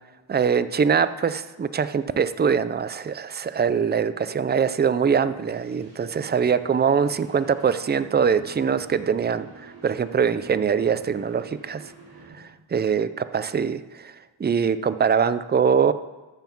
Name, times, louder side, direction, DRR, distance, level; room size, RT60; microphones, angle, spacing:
voice 1, 0.3-11.8 12.3-14.1 14.4-15.9, right 6 dB, 25° right, 13 dB, 0.3 m, -23 dB
sound 1, 5.0-12.7, right 3 dB, 50° right, 3.7 m, -48 dB
14.0 x 5.8 x 5.9 m, 1.3 s
wide cardioid pair, 130°, 46 cm